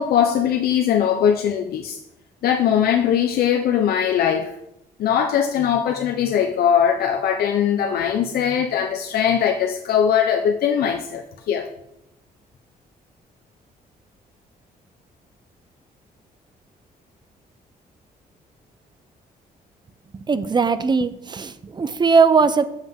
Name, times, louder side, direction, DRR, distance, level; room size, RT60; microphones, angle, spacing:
voice 1, 0.0-2.0 2.4-4.5 5.0-11.7, left 8 dB, 75° left, 4 dB, 0.7 m, -20 dB
voice 2, 20.1-22.7, right 5 dB, 30° right, 12 dB, 0.7 m, -19 dB
7.6 x 7.3 x 3.7 m, 0.81 s
cardioid pair, 100°, 16 cm